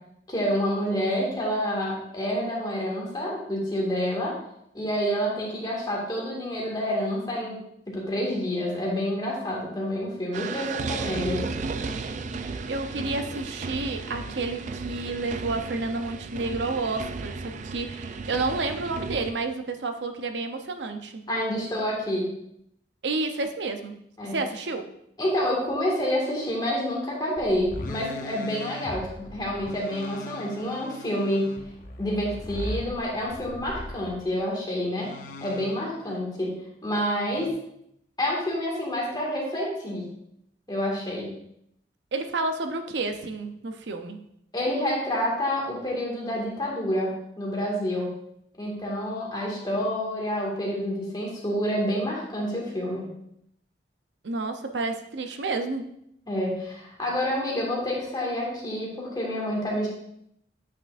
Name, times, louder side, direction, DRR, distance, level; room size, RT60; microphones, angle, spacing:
voice 1, 0.3-4.3 4.7-7.6 7.9-11.4 21.3-22.3 24.2-24.4 25.2-31.5 32.0-35.1 35.4-36.5 36.8-37.5 38.2-40.1 40.7-41.3 44.5-48.1 48.6-53.1 56.3-59.9, equal, 25° left, -3 dB, 1.9 m, -28 dB
sound 1, 10.3-19.3, right 4 dB, 45° right, 0.4 m, -34 dB
voice 2, 12.6-21.2 23.0-24.0 24.3-24.8 36.1-36.2 42.1-44.2 54.2-55.8, right 3 dB, 80° right, 7 dB, 0.7 m, -30 dB
sound 2, 27.4-34.2 35.0-36.0 37.3-37.5, left 1 dB, 50° left, 0.8 m, -39 dB
8.6 x 5.9 x 2.5 m, 0.75 s
head